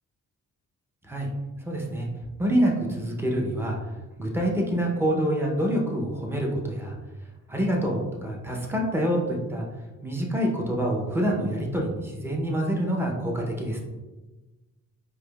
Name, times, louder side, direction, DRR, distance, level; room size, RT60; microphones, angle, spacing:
voice 1, 1.6-2.1 2.4-3.8 4.2-7.0 7.5-9.7 10.0-13.8, equal, 10° right, -1 dB, 0.6 m, -26 dB
4.8 x 2.1 x 2.3 m, 1.2 s
cardioid pair, 105°, 30 cm